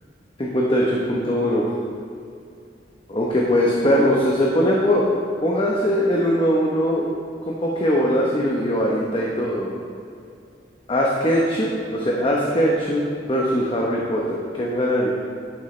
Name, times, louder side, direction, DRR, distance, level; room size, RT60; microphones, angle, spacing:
voice 1, 0.4-0.8 1.1-1.7 3.1-5.1 5.4-7.0 7.5-9.7 10.9-13.0 13.3-15.1, equal, 30° left, -3 dB, 0.9 m, -21 dB
11.0 x 8.9 x 3.2 m, 2.5 s
head